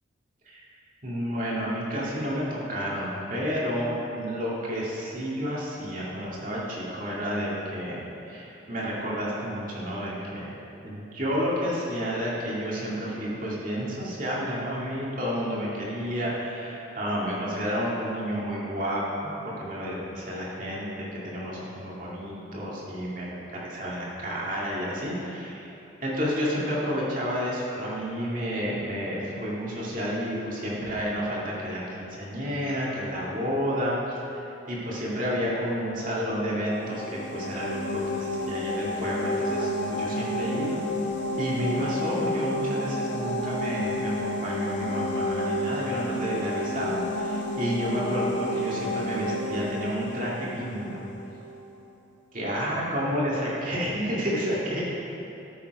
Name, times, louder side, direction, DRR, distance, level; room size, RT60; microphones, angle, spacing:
voice 1, 1.0-10.5 10.8-25.7 26.0-37.0 37.3-40.8 41.4-51.0 52.3-54.8, equal, 45° right, -6 dB, 2.3 m, -30 dB
sound 1, 36.7-51.4, left 1 dB, 70° left, 1.3 m, -30 dB
13.0 x 7.1 x 4.8 m, 2.9 s
head